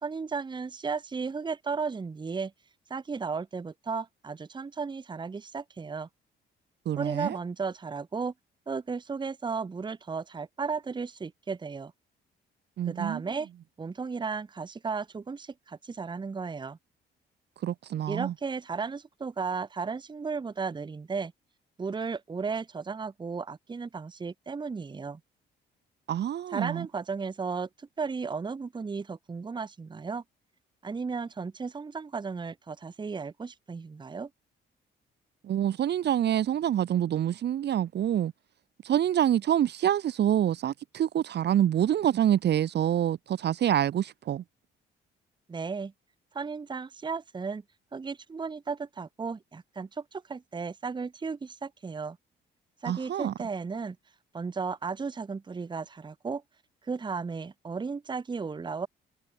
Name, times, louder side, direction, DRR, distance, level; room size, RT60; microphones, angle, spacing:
voice 1, 0.0-2.5 2.9-6.1 7.0-8.3 8.7-11.9 12.9-13.5 13.8-16.8 18.1-21.3 21.8-25.2 26.5-30.2 30.8-34.3 45.5-45.9 46.3-47.6 47.9-52.2 52.8-54.0 54.3-56.4 56.8-58.9, right 5 dB, 25° right, 0.8 m, -34 dB
voice 2, 6.9-7.4 12.8-13.2 17.6-18.3 26.1-26.9 35.4-38.3 38.8-44.4 52.9-53.3, right 10 dB, 60° right, 0.8 m, -26 dB
cardioid pair, 90°, 20 cm